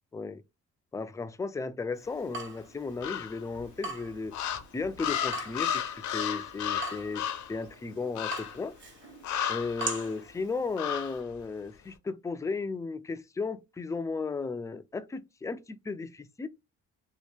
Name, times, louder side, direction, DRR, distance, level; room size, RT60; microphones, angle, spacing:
voice 1, 0.9-4.4 4.7-8.7 9.5-16.5, left 4 dB, 10° left, 0.3 m, -35 dB
Water tap faucet / Drip, 1.9-11.2, right 3 dB, 40° right, 1.1 m, -43 dB
sound 1, 3.0-3.6 4.3-7.6 8.1-8.6 9.2-10.1 10.8-11.2, left 9 dB, 70° left, 0.6 m, -33 dB
2.8 x 2.5 x 3.4 m
cardioid pair, 90°, 30 cm